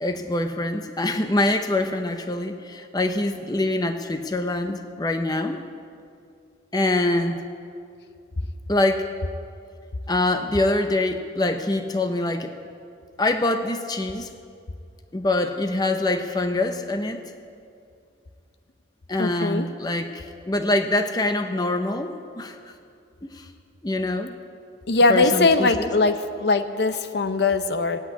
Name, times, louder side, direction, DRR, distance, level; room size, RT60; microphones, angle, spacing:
voice 1, 0.0-5.6 6.7-7.4 8.7-9.1 10.1-12.5 13.2-14.3 15.1-17.2 19.1-22.6 23.2-23.5 23.8-24.4 25.1-25.9, left 2 dB, 20° left, 6 dB, 0.6 m, -24 dB
voice 2, 19.2-19.7 24.9-28.0, left 3 dB, 60° left, 9 dB, 0.7 m, -21 dB
16.0 x 8.2 x 9.5 m, 2.4 s
head